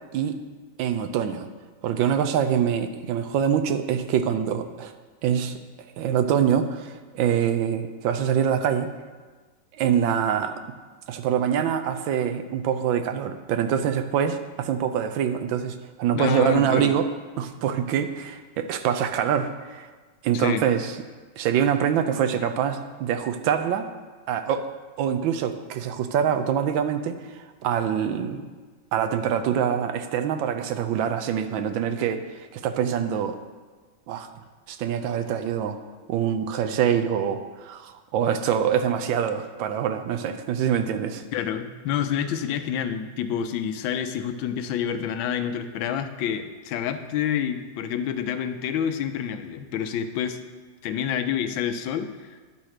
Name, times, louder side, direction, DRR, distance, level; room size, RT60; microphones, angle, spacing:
voice 1, 0.8-1.5 1.8-4.9 5.2-5.6 6.0-8.9 9.8-10.6 11.1-17.1 17.4-19.9 20.2-21.0 21.4-23.9 24.3-24.7 25.0-28.4 28.9-33.4 34.1-34.3 34.7-35.8 36.1-41.2, right 8 dB, 80° right, 8 dB, 1.4 m, -25 dB
voice 2, 16.1-17.0 20.3-20.6 41.3-50.4 50.8-52.3, left 8 dB, 85° left, 9 dB, 1.4 m, -28 dB
10.5 x 4.4 x 6.4 m, 1.4 s
omnidirectional pair, 2.1 m